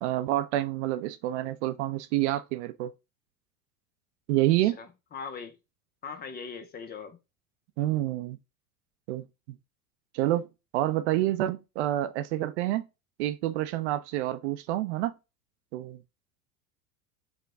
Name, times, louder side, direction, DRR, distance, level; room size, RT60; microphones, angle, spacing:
voice 1, 0.0-2.9 4.3-4.8 7.8-8.4 9.1-9.2 10.1-10.5 10.7-12.9 13.2-15.1 15.7-16.0, right 15 dB, 55° right, 0.5 m, -28 dB
voice 2, 4.6-5.6 6.0-7.2, left 5 dB, 20° left, 0.6 m, -40 dB
4.7 x 2.2 x 3.6 m
figure-of-eight pair, 80°, 43 cm